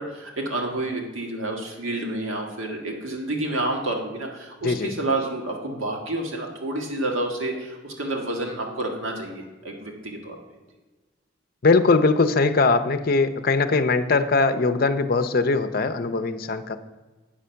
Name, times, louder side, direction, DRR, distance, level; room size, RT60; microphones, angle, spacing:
voice 1, 0.0-10.4, right 2 dB, 75° right, 1 dB, 1.6 m, -29 dB
voice 2, 11.6-16.8, left 3 dB, 45° left, 9 dB, 0.6 m, -21 dB
8.8 x 6.3 x 5.6 m, 1.3 s
head